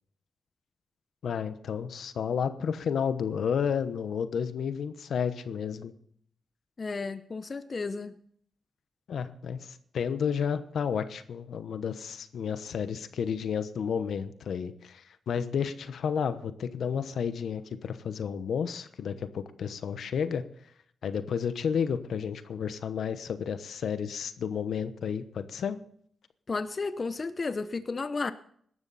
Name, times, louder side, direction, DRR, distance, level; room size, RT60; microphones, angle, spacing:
voice 1, 1.2-5.9 9.1-20.4 21.0-25.8, left 7 dB, 75° left, 12 dB, 1.0 m, -31 dB
voice 2, 6.8-8.2 26.5-28.3, left 4 dB, 45° left, 12 dB, 0.8 m, -33 dB
17.5 x 12.5 x 4.2 m, 0.64 s
cardioid pair, 65°, 0 cm